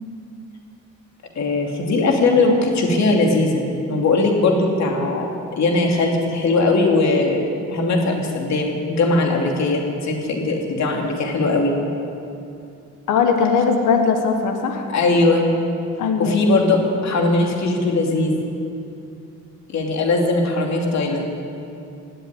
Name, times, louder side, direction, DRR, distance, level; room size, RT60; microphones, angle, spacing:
voice 1, 1.4-7.4 7.7-11.7 14.9-15.4 16.2-18.4 19.7-21.3, left 2 dB, 65° left, 1 dB, 2.9 m, -19 dB
voice 2, 13.1-14.8 16.0-16.5, left 5 dB, 90° left, 4 dB, 1.6 m, -19 dB
18.0 x 7.8 x 9.8 m, 2.6 s
cardioid pair, 90°, 30 cm